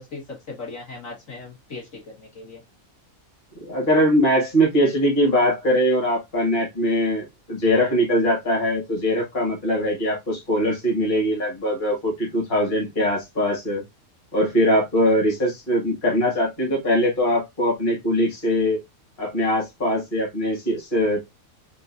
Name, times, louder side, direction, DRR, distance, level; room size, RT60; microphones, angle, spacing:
voice 1, 0.0-2.6, left 3 dB, 65° left, 2.0 m, -38 dB
voice 2, 3.6-13.8 14.3-18.8 19.2-21.2, equal, 35° left, 1.7 m, -21 dB
3.8 x 2.6 x 2.6 m
omnidirectional pair, 1.5 m